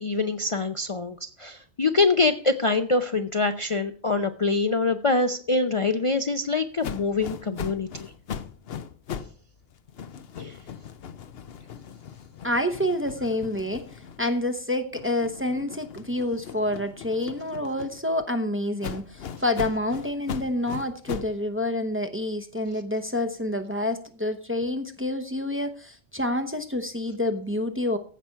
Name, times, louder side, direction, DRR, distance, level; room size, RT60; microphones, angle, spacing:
voice 1, 0.0-8.1 10.4-10.5, left 3 dB, 35° left, 7 dB, 0.6 m, -25 dB
sound 1, 6.8-9.4 9.7-14.5 14.9-18.2 18.8-21.4, left 7 dB, 65° left, 1.0 m, -39 dB
voice 2, 12.4-28.0, left 1 dB, 10° right, 6 dB, 0.8 m, -28 dB
15.0 x 5.9 x 5.8 m, 0.43 s
omnidirectional pair, 1.1 m